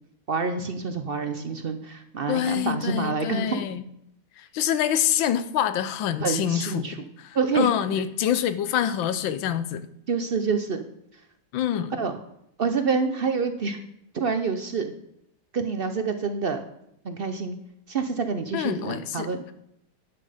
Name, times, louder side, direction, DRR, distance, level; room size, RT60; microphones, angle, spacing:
voice 1, 0.3-3.7 6.2-7.0 7.3-7.7 10.1-10.8 12.0-12.2 12.6-13.8 14.1-14.9 15.5-16.6 17.0-17.6 17.9-19.4, right 5 dB, 70° right, 8 dB, 0.5 m, -27 dB
voice 2, 2.3-3.8 4.4-6.9 7.2-9.8 11.5-11.9 18.5-19.3, left 10 dB, 90° left, 12 dB, 1.5 m, -26 dB
11.5 x 8.7 x 5.0 m, 0.77 s
omnidirectional pair, 2.0 m